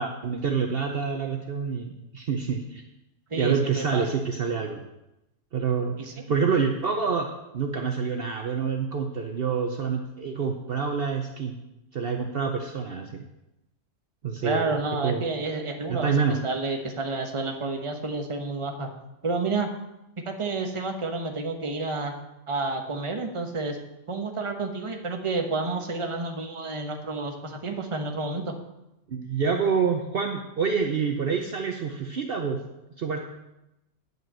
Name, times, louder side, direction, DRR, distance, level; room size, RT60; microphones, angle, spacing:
voice 1, 0.0-2.8 3.3-4.8 5.5-7.3 7.5-11.5 11.9-13.2 14.2-14.7 15.0-15.2 15.9-16.4 29.1-32.6 33.0-33.2, right 5 dB, 55° right, 4 dB, 0.9 m, -27 dB
voice 2, 3.3-4.1 6.0-6.3 14.4-18.9 19.2-19.7 20.3-22.1 22.5-23.8 24.1-28.5, right 3 dB, 25° right, 4 dB, 1.0 m, -30 dB
9.3 x 5.6 x 7.4 m, 0.92 s
omnidirectional pair, 1.3 m